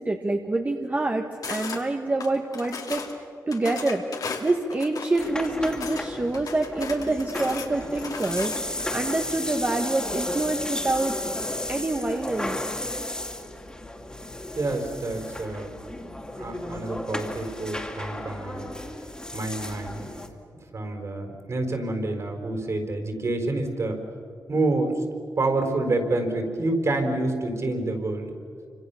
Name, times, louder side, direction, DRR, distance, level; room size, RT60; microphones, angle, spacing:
voice 1, 0.0-3.0 3.5-4.0 4.4-11.2 11.7-12.6, right 2 dB, 25° right, 3 dB, 1.4 m, -26 dB
sound 1, 1.4-1.8 2.2-3.1 3.5-6.0 6.3-8.8, left 5 dB, 65° left, 2.7 m, -36 dB
sound 2, 5.2-20.3, left 1 dB, 10° left, 2.5 m, -34 dB
voice 2, 14.6-15.7 16.4-18.7 19.3-20.1 20.7-24.0 24.5-25.0 25.4-28.3, right 2 dB, 50° right, 4 dB, 4.3 m, -27 dB
29.5 x 25.5 x 7.0 m, 2.5 s
wide cardioid pair, 115°, 7 cm